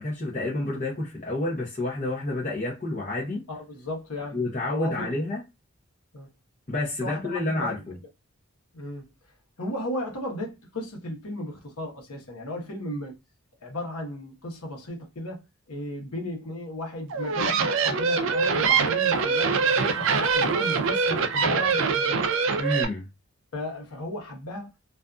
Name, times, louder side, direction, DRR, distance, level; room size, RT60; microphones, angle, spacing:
voice 1, 0.0-3.4 4.3-5.4 6.7-8.0 22.6-23.0, left 2 dB, 35° left, 0.7 m, -29 dB
voice 2, 3.5-5.1 6.1-6.3 7.0-7.8 8.7-9.0 9.6-13.2 13.6-15.4 15.7-22.2 23.5-24.7, left 1 dB, 85° left, 1.0 m, -35 dB
sound 1, 17.1-22.8, right 5 dB, 60° right, 0.4 m, -24 dB
2.5 x 2.5 x 2.3 m
head